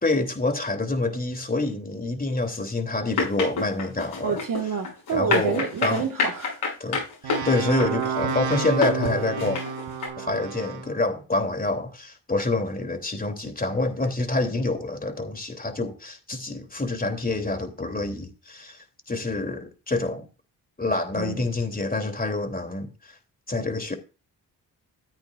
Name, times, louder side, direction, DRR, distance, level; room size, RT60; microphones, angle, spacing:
voice 1, 0.0-4.4 5.1-6.0 6.8-9.6 10.2-20.3 20.8-23.1 23.5-24.0, left 2 dB, 25° left, 3.1 m, -27 dB
sound 1, 3.1-10.1, left 4 dB, 80° left, 6.7 m, -28 dB
voice 2, 4.2-6.6 21.2-21.5, right 6 dB, 55° right, 1.8 m, -28 dB
sound 2, 7.2-10.9, right 7 dB, 75° right, 1.8 m, -30 dB
14.5 x 8.6 x 2.6 m
supercardioid pair, 55°, 38 cm